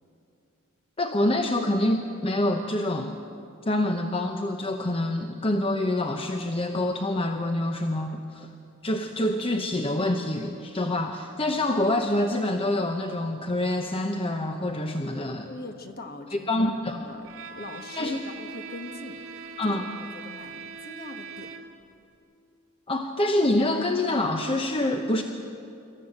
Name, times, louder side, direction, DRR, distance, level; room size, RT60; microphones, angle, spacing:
voice 1, 1.0-3.2 3.7-8.5 8.8-15.5 16.5-17.1 18.0-18.3 19.6-19.9 22.9-25.2, left 1 dB, 25° left, 5 dB, 0.8 m, -26 dB
voice 2, 15.2-17.3 17.5-21.5, left 2 dB, 45° left, 5 dB, 1.6 m, -42 dB
Bowed string instrument, 17.2-21.9, right 5 dB, 65° right, 2.1 m, -41 dB
26.0 x 14.5 x 7.8 m, 2.7 s
head